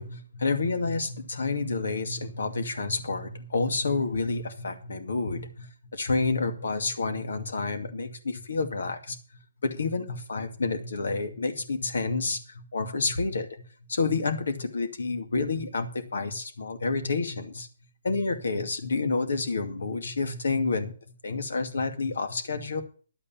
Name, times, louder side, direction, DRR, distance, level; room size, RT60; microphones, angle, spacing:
voice 1, 0.0-9.2 9.6-13.5 13.9-17.7 18.0-20.9 21.2-22.8, left 3 dB, 80° left, 8 dB, 2.3 m, -29 dB
11.0 x 8.3 x 7.3 m, 0.41 s
hypercardioid pair, 155°, 0 cm